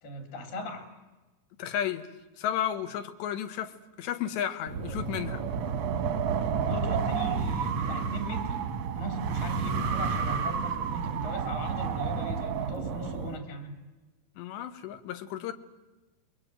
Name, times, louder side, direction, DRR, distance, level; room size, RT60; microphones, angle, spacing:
voice 1, 0.0-0.9 6.5-8.6 8.9-13.8, equal, 65° left, 6 dB, 5.2 m, -38 dB
voice 2, 1.6-2.1 2.4-5.4 14.4-15.5, left 10 dB, 80° left, 9 dB, 3.6 m, -33 dB
Wind, 4.7-13.4, right 6 dB, 65° right, 1.7 m, -30 dB
27.5 x 22.5 x 9.1 m, 1.1 s
omnidirectional pair, 5.0 m